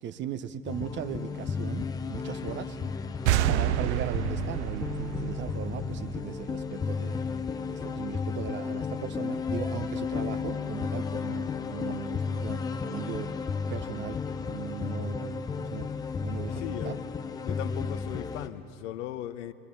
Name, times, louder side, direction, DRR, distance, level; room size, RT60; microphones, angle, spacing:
voice 1, 0.0-2.8 3.5-7.2 7.7-13.3 13.7-15.9 16.2-17.0, right 9 dB, 25° right, 13 dB, 0.9 m, -38 dB
sound 1, 0.7-18.5, left 5 dB, 10° left, 0.5 m, -33 dB
sound 2, 3.2-6.7, right 13 dB, 50° right, 0.5 m, -29 dB
voice 2, 16.5-17.0 17.4-19.5, left 13 dB, 50° left, 11 dB, 1.0 m, -38 dB
29.0 x 22.0 x 6.9 m, 2.7 s
figure-of-eight pair, 90°, 47 cm